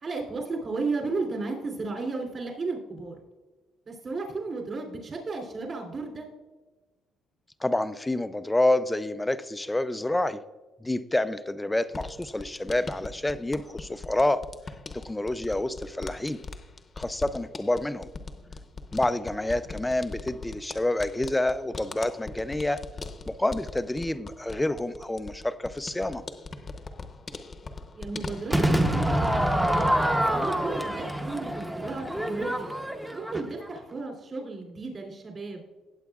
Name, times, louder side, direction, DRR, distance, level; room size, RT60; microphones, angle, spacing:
voice 1, 0.0-3.2 3.9-6.3 27.9-29.6 30.3-32.7 33.1-35.6, right 3 dB, 40° right, 1 dB, 3.0 m, -34 dB
voice 2, 7.6-10.4 10.8-14.4 14.9-16.4 17.0-18.1 18.9-22.8 23.3-26.2, left 1 dB, 10° left, 12 dB, 0.4 m, -28 dB
sound 1, 11.9-29.4 29.7-30.4, left 3 dB, 30° left, 0.8 m, -41 dB
Crowd / Fireworks, 28.5-33.8, right 1 dB, 5° right, 0.8 m, -26 dB
17.5 x 8.0 x 2.4 m, 1.2 s
cardioid pair, 125°, 0 cm